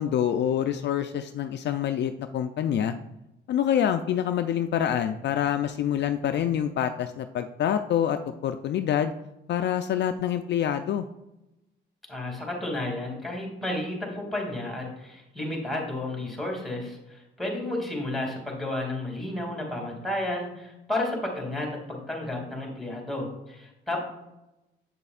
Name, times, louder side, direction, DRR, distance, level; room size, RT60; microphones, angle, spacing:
voice 1, 0.0-2.9 3.5-9.1 9.5-11.1, left 9 dB, 60° left, 9 dB, 0.4 m, -26 dB
voice 2, 12.1-24.0, left 1 dB, ahead, 0 dB, 2.5 m, -32 dB
7.8 x 6.6 x 2.4 m, 0.91 s
cardioid pair, 90°, 20 cm